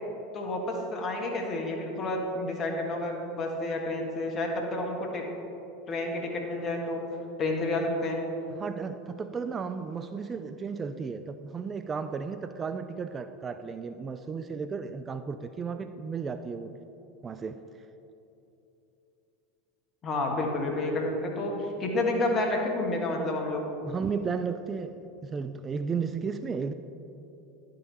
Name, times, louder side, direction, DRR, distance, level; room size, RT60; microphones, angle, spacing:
voice 1, 0.3-5.3 5.9-7.0 7.4-8.2 20.0-23.6, left 2 dB, 35° left, 1 dB, 1.5 m, -30 dB
voice 2, 8.5-16.7 17.2-17.7 23.8-25.0 25.2-26.7, right 5 dB, 25° right, 10 dB, 0.3 m, -34 dB
11.0 x 5.3 x 4.1 m, 2.9 s
hypercardioid pair, 80°, 0 cm